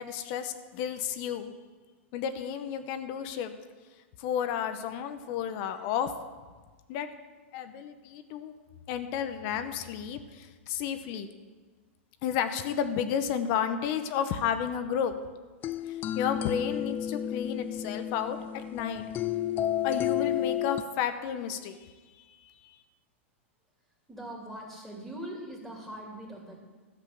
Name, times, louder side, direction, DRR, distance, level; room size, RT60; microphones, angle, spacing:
voice 1, 0.0-1.5 2.1-3.5 4.2-6.1 6.9-7.1 7.5-8.5 8.9-11.3 12.2-15.1 16.1-19.0 19.8-21.8, left 8 dB, 50° left, 9 dB, 1.0 m, -32 dB
sound 1, 15.6-20.8, left 11 dB, 30° left, 0.4 m, -31 dB
voice 2, 24.1-26.6, right 1 dB, ahead, -2 dB, 2.8 m, -41 dB
13.0 x 7.4 x 6.7 m, 1.4 s
hypercardioid pair, 120°, 7 cm